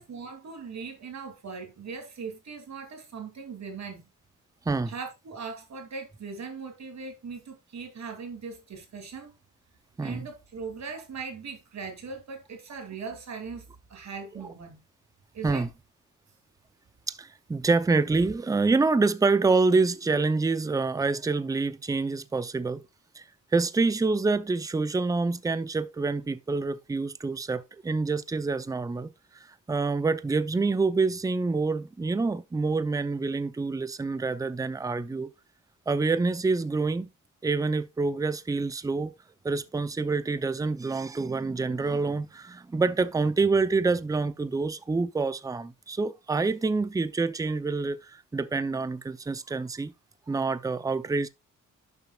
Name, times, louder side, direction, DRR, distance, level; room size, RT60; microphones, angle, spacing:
voice 1, 0.0-4.0 4.9-9.3 10.0-14.8 15.3-15.6, right 5 dB, 55° right, 2.6 m, -39 dB
voice 2, 17.1-22.8 23.2-23.3 23.5-29.1 29.7-35.3 35.9-37.1 37.4-39.1 39.4-49.9 50.3-51.3, right 3 dB, 10° right, 0.5 m, -27 dB
11.5 x 7.1 x 2.3 m
wide cardioid pair, 140°, 32 cm